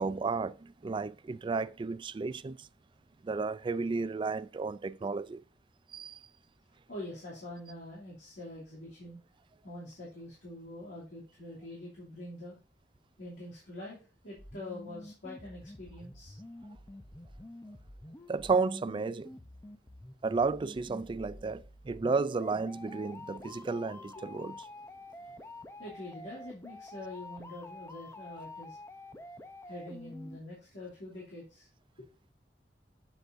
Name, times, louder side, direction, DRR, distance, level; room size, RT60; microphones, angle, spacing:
voice 1, 0.0-2.7 3.2-5.4 5.9-6.2 18.3-19.3 20.2-24.6, right 4 dB, 30° right, 0.3 m, -32 dB
voice 2, 6.9-9.2 9.6-12.6 13.2-14.0 14.2-16.4 21.3-21.4 23.4-23.5 24.1-24.2 25.8-28.8 29.7-31.7, left 1 dB, 80° left, 2.7 m, -45 dB
sound 1, 14.4-30.4, left 1 dB, 15° left, 0.6 m, -48 dB
8.2 x 8.0 x 2.6 m
head